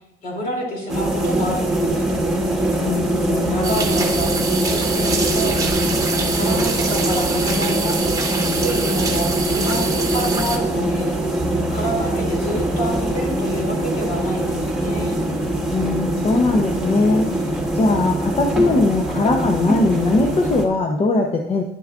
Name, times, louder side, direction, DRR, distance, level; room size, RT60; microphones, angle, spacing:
voice 1, 0.2-2.0 3.5-5.6 6.3-8.1 8.5-11.2 11.7-15.2, equal, 55° left, -1 dB, 2.9 m, -28 dB
sound 1, 0.9-20.7, right 1 dB, 5° right, 1.5 m, -22 dB
voice 2, 2.8-3.9 15.7-17.3 17.7-21.6, left 3 dB, 35° left, 2 dB, 0.7 m, -20 dB
sound 2, 3.6-10.6, right 4 dB, 20° right, 1.1 m, -25 dB
10.0 x 6.9 x 2.4 m, 0.80 s
cardioid pair, 110°, 17 cm